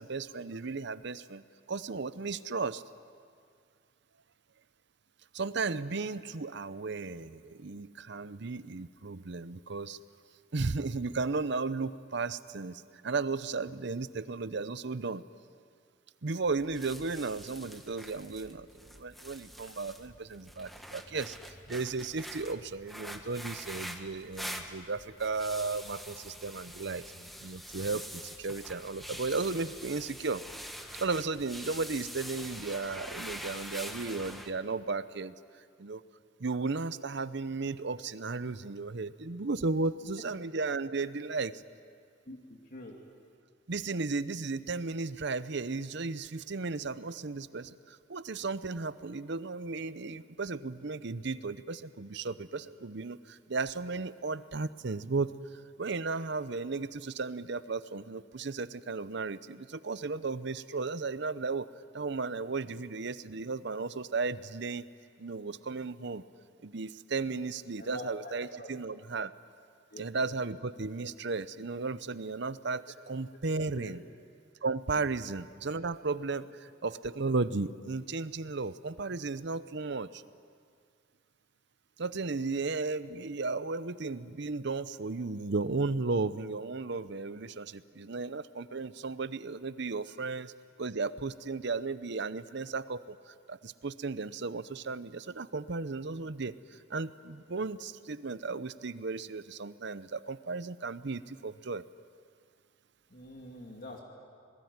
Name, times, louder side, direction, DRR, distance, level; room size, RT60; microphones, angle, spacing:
voice 1, 0.0-1.4 1.7-2.8 5.3-10.0 10.5-15.2 16.2-27.0 27.4-30.4 30.9-35.3 35.8-36.0 36.4-41.6 43.7-55.3 55.8-61.7 61.9-64.9 65.2-66.2 66.6-69.3 70.0-74.0 74.6-80.2 82.0-90.5 90.8-101.8, right 3 dB, 60° right, 14 dB, 0.8 m, -35 dB
sound 1, 16.4-34.5, equal, ahead, 1.6 m, -45 dB
voice 2, 42.3-43.0 62.6-62.7 67.8-68.7 69.9-70.3 72.9-73.0 73.7-73.9 75.0-75.1 76.3-76.4 103.1-104.0, left 1 dB, 50° left, 0 dB, 2.5 m, -46 dB
27.5 x 20.5 x 9.6 m, 2.2 s
head